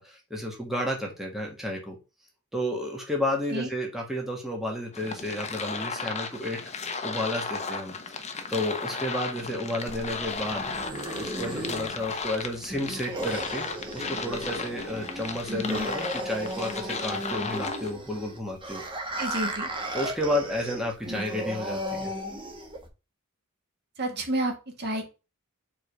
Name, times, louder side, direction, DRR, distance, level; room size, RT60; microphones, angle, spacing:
voice 1, 0.0-2.0 2.5-6.6 7.0-7.9 8.5-10.7 11.2-13.7 13.9-18.8 19.9-22.1, left 1 dB, ahead, 0 dB, 1.5 m, -31 dB
sound 1, 4.9-17.9, left 4 dB, 30° left, 0.8 m, -35 dB
sound 2, 9.9-22.9, equal, 25° right, 1.4 m, -35 dB
voice 2, 19.2-19.7 24.0-25.1, right 1 dB, 50° right, 3 dB, 1.6 m, -30 dB
5.0 x 3.9 x 5.0 m, 0.29 s
head